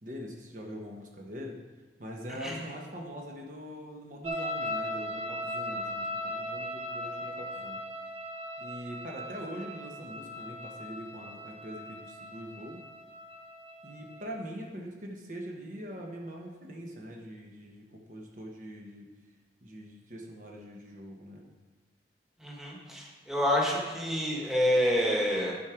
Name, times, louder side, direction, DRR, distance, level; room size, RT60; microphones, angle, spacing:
voice 1, 0.0-1.6 2.0-7.8 8.6-12.8 13.8-19.1 19.6-21.4, equal, 45° right, 0 dB, 1.1 m, -43 dB
sound 1, 4.2-14.3, left 1 dB, 30° right, 0.7 m, -38 dB
voice 2, 22.4-25.5, equal, ahead, -3 dB, 1.3 m, -28 dB
12.5 x 4.5 x 5.0 m, 1.3 s
head